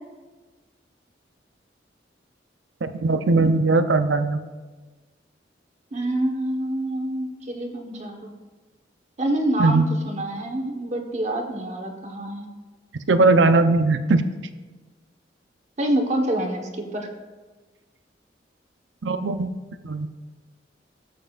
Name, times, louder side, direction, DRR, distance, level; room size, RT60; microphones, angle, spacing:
voice 1, 2.8-4.4 9.6-9.9 13.1-14.3 19.0-19.5 19.8-20.1, right 3 dB, 90° right, 9 dB, 0.6 m, -19 dB
voice 2, 5.9-8.3 9.2-12.5 15.8-17.1, right 1 dB, 40° right, 3 dB, 1.3 m, -26 dB
16.5 x 7.8 x 2.5 m, 1.3 s
head